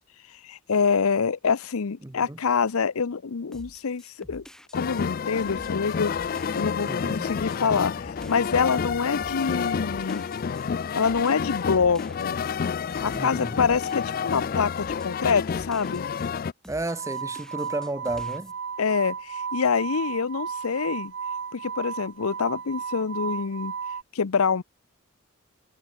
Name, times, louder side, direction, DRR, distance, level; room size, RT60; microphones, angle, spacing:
voice 1, 0.4-4.4 4.7-6.1 6.5-10.2 10.9-12.4 13.0-16.0 18.8-21.1 21.5-23.7 24.1-24.6, left 5 dB, 75° left, 0.6 m, -26 dB
voice 2, 2.0-2.4 6.8-7.3 13.1-13.6 16.7-18.5, right 2 dB, 15° right, 0.5 m, -33 dB
sound 1, 3.5-16.3 16.6-18.5, equal, ahead, 1.3 m, -48 dB
sound 2, 4.7-16.5, left 6 dB, 40° left, 0.3 m, -29 dB
sound 3, 16.9-24.0, right 6 dB, 55° right, 0.7 m, -34 dB
head